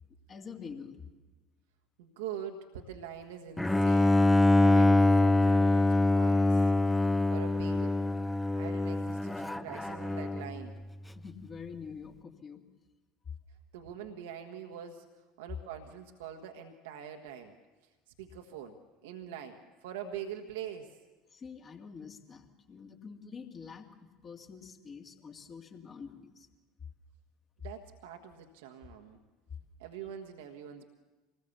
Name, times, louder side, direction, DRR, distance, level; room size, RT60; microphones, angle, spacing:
voice 1, 0.3-1.0 11.2-12.6 21.3-26.5 29.5-29.6, left 6 dB, 30° left, 4 dB, 2.4 m, -46 dB
voice 2, 2.0-6.7 7.3-8.0 8.6-10.8 13.7-17.6 17.8-21.0 27.6-29.2 29.8-30.8, right 8 dB, 65° right, 4 dB, 1.5 m, -44 dB
Bowed string instrument, 3.6-10.6, left 2 dB, 5° left, 0.6 m, -25 dB
26.0 x 20.0 x 7.1 m, 1.2 s
figure-of-eight pair, 70°, 0 cm